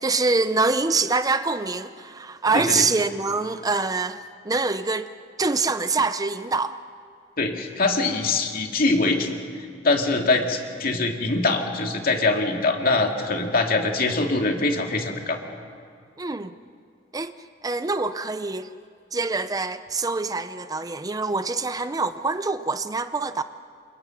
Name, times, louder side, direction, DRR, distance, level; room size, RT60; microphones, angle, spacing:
voice 1, 0.0-4.2 4.4-5.1 5.4-6.7 16.2-16.5 17.1-17.3 17.6-18.7 19.1-23.4, right 3 dB, 20° right, 11 dB, 0.6 m, -25 dB
voice 2, 2.5-2.8 7.4-9.4 9.8-15.4, left 3 dB, 55° left, 2 dB, 2.6 m, -23 dB
29.0 x 28.0 x 6.0 m, 2.3 s
head